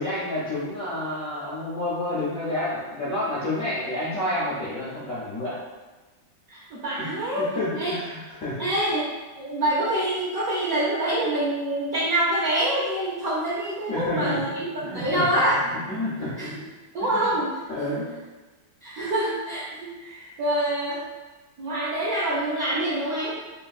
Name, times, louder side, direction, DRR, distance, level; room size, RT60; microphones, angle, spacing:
voice 1, 0.0-5.6 7.0-8.7 13.9-14.5 14.8-15.4 15.9-16.5 17.0-17.4 17.7-18.1, left 1 dB, 70° left, -9 dB, 0.8 m, -29 dB
voice 2, 6.5-7.5 7.8-8.0 8.6-9.0 9.4-15.6 16.4-16.6 16.9-17.5 17.8-18.0 18.8-21.0 21.6-23.3, right 1 dB, 80° right, -8 dB, 0.8 m, -26 dB
3.3 x 2.8 x 2.3 m, 1.2 s
omnidirectional pair, 2.2 m